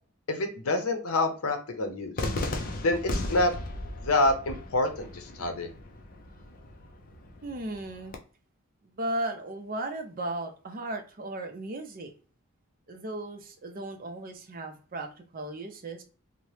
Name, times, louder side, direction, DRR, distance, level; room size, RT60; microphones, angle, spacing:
voice 1, 0.3-2.1 2.8-3.5 4.0-5.7, left 2 dB, 80° left, 6 dB, 0.6 m, -27 dB
Cheering / Fireworks, 2.2-8.2, left 2 dB, 40° left, 0.4 m, -36 dB
voice 2, 7.4-8.2 8.8-12.1 12.9-16.0, right 1 dB, 40° right, 5 dB, 0.5 m, -36 dB
2.8 x 2.1 x 3.1 m, 0.38 s
head